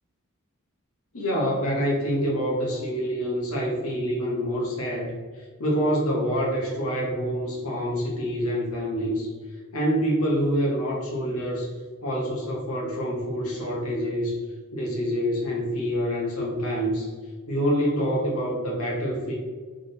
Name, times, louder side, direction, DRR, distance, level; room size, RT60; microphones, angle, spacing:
voice 1, 1.1-9.3 9.7-11.7 12.0-14.4 14.7-17.1 17.5-19.4, equal, 70° left, -2 dB, 1.0 m, -26 dB
3.7 x 3.7 x 3.9 m, 1.5 s
head